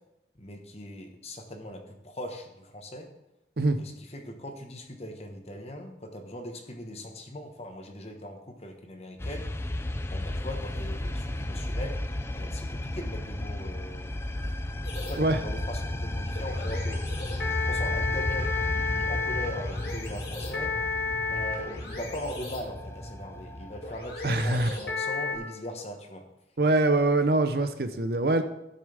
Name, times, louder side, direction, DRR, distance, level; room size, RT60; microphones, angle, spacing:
voice 1, 0.3-3.1 3.8-9.5 10.1-12.0 12.3-17.1 17.5-20.7 21.3-26.2, left 1 dB, 35° left, 4 dB, 1.4 m, -40 dB
sound 1, 9.2-24.9, left 1 dB, 15° left, 0.4 m, -34 dB
sound 2, 14.8-25.4, left 4 dB, 60° left, 2.6 m, -33 dB
voice 2, 24.2-24.7 26.6-28.4, right 2 dB, 60° right, 8 dB, 0.7 m, -24 dB
16.0 x 6.5 x 3.5 m, 0.89 s
head